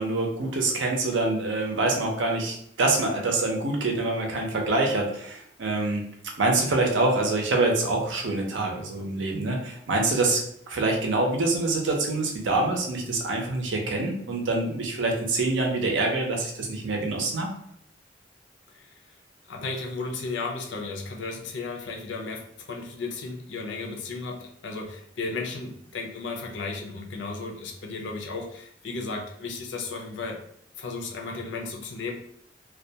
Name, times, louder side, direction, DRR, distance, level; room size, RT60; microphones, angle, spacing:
voice 1, 0.0-6.1 6.4-17.5, right 2 dB, 90° right, 1 dB, 0.6 m, -25 dB
voice 2, 19.5-30.4 30.8-32.1, left 3 dB, 70° left, 1 dB, 0.5 m, -34 dB
2.3 x 2.2 x 2.7 m, 0.69 s
head